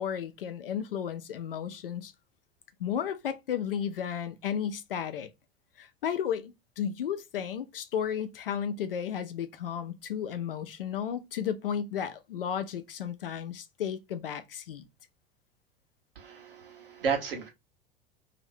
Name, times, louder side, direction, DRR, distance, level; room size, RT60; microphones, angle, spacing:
voice 1, 0.0-2.1 2.8-5.3 5.8-14.8, left 8 dB, 70° left, 0.6 m, -33 dB
voice 2, 16.2-17.5, right 6 dB, 70° right, 1.0 m, -33 dB
2.8 x 2.7 x 3.2 m
figure-of-eight pair, 80°, 29 cm